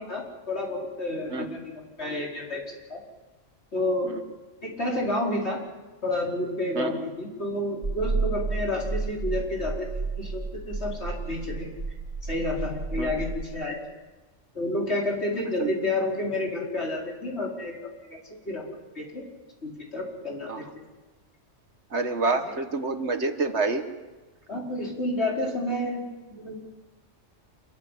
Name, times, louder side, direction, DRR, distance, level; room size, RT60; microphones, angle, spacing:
voice 1, 0.0-2.6 2.9-3.0 3.7-4.2 4.6-5.6 6.0-11.7 12.2-13.8 14.5-18.7 18.9-19.3 19.6-20.9 24.5-26.7, left 1 dB, 55° left, -1 dB, 5.0 m, -30 dB
sound 1, 7.8-13.4, right 4 dB, 45° right, 4.9 m, -31 dB
voice 2, 21.9-23.8, right 3 dB, 60° right, 7 dB, 1.8 m, -27 dB
27.5 x 14.5 x 10.0 m, 1.2 s
omnidirectional pair, 1.3 m